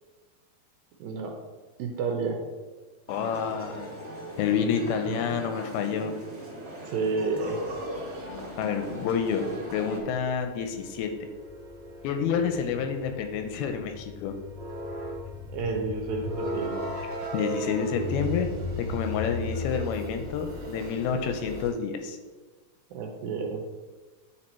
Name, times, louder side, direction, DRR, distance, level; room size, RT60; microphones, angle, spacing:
voice 1, 1.0-1.3 1.8-2.4 5.0-5.2 6.9-7.6 15.5-16.9 22.9-23.6, right 4 dB, 75° right, 3 dB, 2.3 m, -30 dB
voice 2, 3.1-3.9 4.4-6.1 8.6-11.1 12.0-14.3 17.3-18.5 18.8-22.2, left 6 dB, 85° left, 6 dB, 2.4 m, -29 dB
sound 1, 3.1-10.0, equal, 25° right, 2.1 m, -38 dB
sound 2, 7.4-21.7, left 1 dB, 45° right, 2.0 m, -37 dB
9.8 x 4.6 x 4.3 m, 1.3 s
omnidirectional pair, 4.7 m